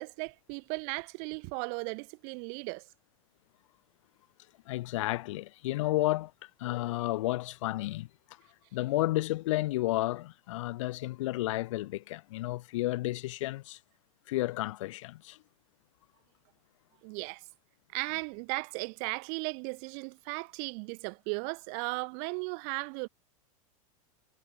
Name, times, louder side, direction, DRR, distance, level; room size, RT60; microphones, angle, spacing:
voice 1, 0.0-2.9 17.0-17.4 17.9-23.1, right 40 dB or more, 40° right, 1.0 m, -36 dB
voice 2, 4.7-8.1 8.7-13.8 14.3-15.4, left 17 dB, 60° left, 2.5 m, -32 dB
supercardioid pair, 165°, 18 cm